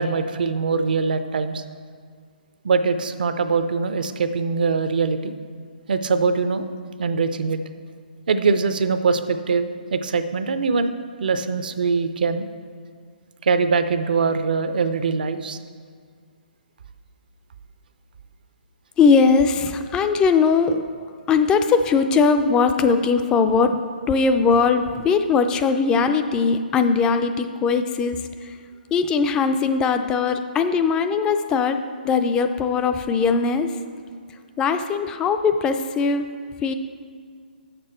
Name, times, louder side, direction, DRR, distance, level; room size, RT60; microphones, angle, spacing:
voice 1, 0.0-1.6 2.6-5.3 5.9-6.7 7.0-7.6 8.3-12.5 13.4-15.6, right 4 dB, 65° right, 10 dB, 0.5 m, -22 dB
voice 2, 19.0-20.9 21.3-23.8 24.1-28.5 28.9-31.8 32.0-33.7 34.6-36.3 36.6-36.7, left 5 dB, 15° left, 8 dB, 0.4 m, -20 dB
7.5 x 6.7 x 4.3 m, 2.1 s
hypercardioid pair, 140°, 5 cm